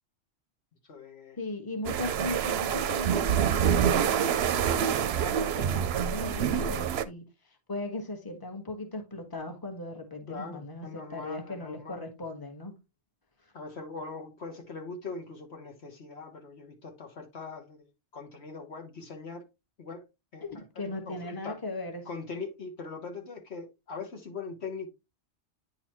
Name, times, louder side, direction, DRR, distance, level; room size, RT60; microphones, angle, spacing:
voice 1, 0.8-1.4 10.3-12.0 13.5-17.9 18.1-19.4 19.8-20.0 20.3-21.6 22.1-24.9, left 4 dB, 70° left, 1.5 m, -41 dB
voice 2, 1.4-12.7 13.4-13.5 20.4-22.1, left 2 dB, 20° left, 1.4 m, -38 dB
sound 1, 1.8-7.0, right 8 dB, 70° right, 0.8 m, -26 dB
9.6 x 4.0 x 2.9 m
omnidirectional pair, 1.2 m